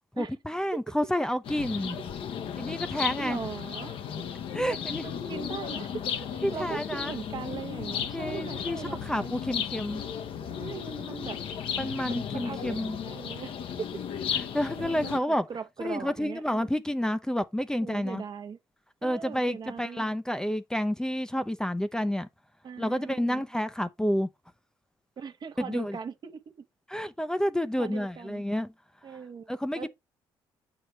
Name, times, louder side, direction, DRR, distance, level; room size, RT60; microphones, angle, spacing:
voice 1, 0.2-2.0 2.6-3.4 4.5-5.1 6.4-7.1 8.1-10.0 11.8-13.0 14.3-15.5 15.8-18.2 19.0-22.3 22.8-24.3 25.6-26.0 26.9-28.7 29.5-29.9, equal, 5° left, 0.6 m, -30 dB
sound 1, 1.4-15.2, left 8 dB, 65° left, 0.9 m, -35 dB
voice 2, 3.2-4.2 4.7-9.3 10.5-11.4 12.1-13.5 13.8-13.9 14.8-15.2 15.5-16.7 17.8-18.6 19.0-20.0 22.6-23.5 25.2-26.4 27.8-28.4 29.0-29.9, right 6 dB, 45° right, 0.9 m, -40 dB
7.8 x 4.9 x 3.1 m
supercardioid pair, 75°, 10 cm